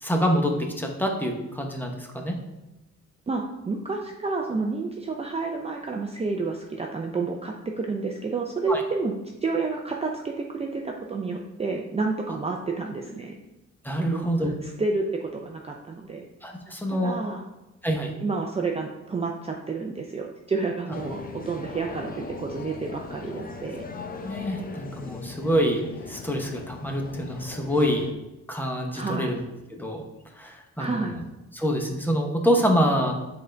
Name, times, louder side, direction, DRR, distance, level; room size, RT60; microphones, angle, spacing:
voice 1, 0.0-2.4 8.7-8.8 13.8-14.5 16.4-17.2 17.8-18.1 24.2-25.8 26.1-28.1 28.5-29.4 29.7-30.0 30.3-31.2 31.5-33.1, equal, 5° left, 2 dB, 0.9 m, -26 dB
voice 2, 3.3-9.1 9.4-13.3 14.0-14.3 14.6-16.3 16.9-17.4 18.2-23.9 28.9-29.3 30.8-31.1, right 4 dB, 20° right, 1 dB, 0.5 m, -30 dB
sound 1, 20.9-28.1, left 4 dB, 30° left, 0.6 m, -39 dB
7.9 x 3.9 x 3.3 m, 0.98 s
cardioid pair, 125°, 29 cm